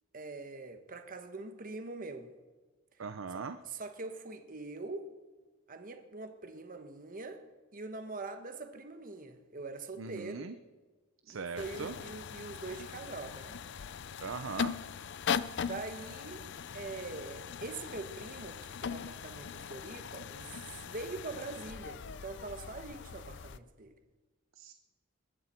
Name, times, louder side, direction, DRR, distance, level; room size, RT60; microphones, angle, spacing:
voice 1, 0.1-2.3 3.3-5.1 5.7-7.4 7.7-10.5 11.3-13.5 15.6-16.4 16.7-23.9, right 3 dB, 45° right, 1.2 m, -43 dB
voice 2, 3.0-3.6 10.0-10.6 11.3-12.0 14.2-14.8 24.6-24.7, right 5 dB, 75° right, 0.6 m, -40 dB
sound 1, 11.6-23.6, left 7 dB, 60° left, 0.5 m, -40 dB
21.5 x 13.5 x 4.5 m
head